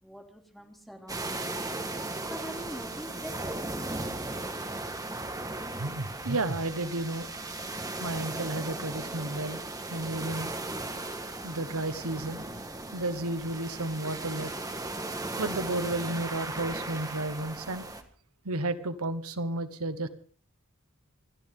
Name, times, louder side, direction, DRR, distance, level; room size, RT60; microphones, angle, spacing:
voice 1, 0.0-1.8 2.3-3.4, equal, ahead, 2 dB, 3.0 m, -43 dB
sound 1, 1.1-18.0, right 2 dB, 15° right, 1.7 m, -37 dB
voice 2, 5.8-7.3 8.0-9.6 9.9-10.5 11.4-12.4 12.9-14.5 15.4-17.8 18.4-20.1, right 2 dB, 85° right, 12 dB, 1.3 m, -32 dB
28.0 x 13.0 x 3.8 m, 0.41 s
head